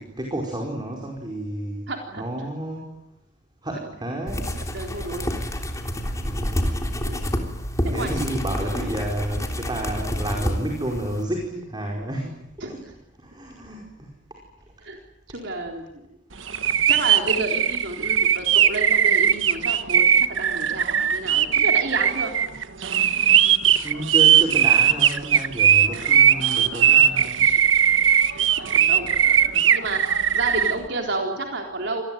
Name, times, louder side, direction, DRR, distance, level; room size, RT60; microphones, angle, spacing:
voice 1, 0.0-1.9 2.2-3.0 3.6-4.7 6.2-6.8 7.9-12.8 13.2-14.1 23.8-27.5, right 1 dB, 25° right, 0 dB, 5.0 m, -31 dB
voice 2, 1.9-2.5 4.7-5.3 7.0-7.3 7.8-8.3 8.6-8.9 12.6-12.7 14.8-15.0 15.3-16.0 16.9-22.3 25.8-26.2 27.5-27.6 28.7-32.0, right 2 dB, 65° right, 2 dB, 3.8 m, -31 dB
sound 1, 4.3-11.2, equal, 15° left, 3.5 m, -28 dB
sound 2, 16.5-30.7, right 9 dB, 90° right, 1.3 m, -19 dB
27.0 x 20.0 x 9.4 m, 0.86 s
head